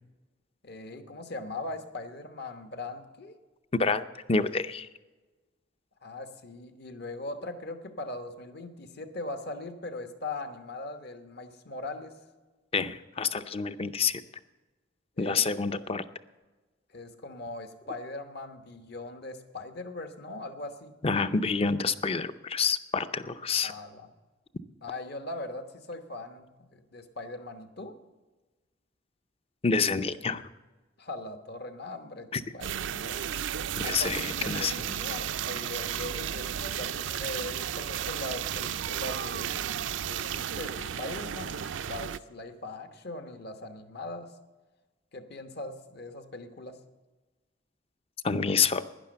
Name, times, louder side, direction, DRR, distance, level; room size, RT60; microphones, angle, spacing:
voice 1, 0.6-3.3 6.0-12.2 15.2-15.8 16.9-20.9 23.6-24.1 24.8-28.0 31.0-33.2 33.7-39.8 40.1-44.3 45.1-46.8, left 2 dB, 55° left, 9 dB, 1.2 m, -40 dB
voice 2, 3.7-4.9 12.7-14.2 15.2-16.0 21.0-23.7 29.6-30.4 32.3-32.4 33.8-34.7 48.2-48.8, left 5 dB, 30° left, 13 dB, 0.5 m, -28 dB
sound 1, 32.6-42.2, right 9 dB, 70° right, 0.4 m, -33 dB
11.5 x 10.5 x 7.8 m, 1.2 s
head